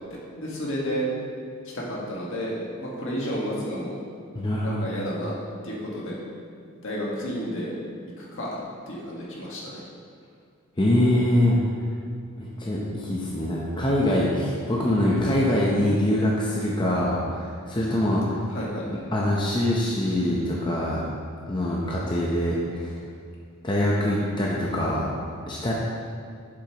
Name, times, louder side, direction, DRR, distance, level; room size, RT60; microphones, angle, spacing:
voice 1, 0.4-1.1 1.7-3.9 4.6-5.3 5.6-6.2 6.8-7.7 8.2-8.6 8.9-9.8 18.5-18.8, equal, 60° left, -4 dB, 1.6 m, -31 dB
voice 2, 4.3-4.8 10.8-11.6 12.4-18.2 19.1-21.0 21.5-23.0 23.6-25.1 25.5-25.7, left 1 dB, 20° left, -4 dB, 0.7 m, -24 dB
8.1 x 7.1 x 3.0 m, 2.2 s
head